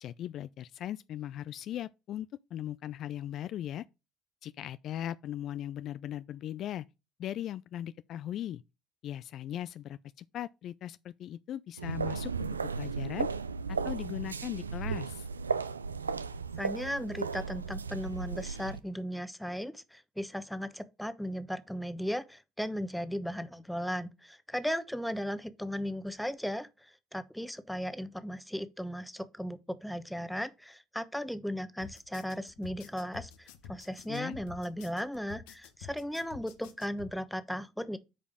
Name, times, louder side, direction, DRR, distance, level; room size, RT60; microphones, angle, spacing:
voice 1, 0.0-3.9 4.4-6.9 7.2-8.6 9.0-13.3 13.7-15.3 34.1-34.4, left 11 dB, 55° left, 0.3 m, -39 dB
sound 1, 11.8-18.8, right 5 dB, 90° right, 0.4 m, -35 dB
voice 2, 16.6-38.0, equal, ahead, 1.0 m, -36 dB
sound 2, 31.8-37.1, left 8 dB, 70° left, 1.0 m, -49 dB
8.6 x 5.1 x 3.6 m
figure-of-eight pair, 55°, 0 cm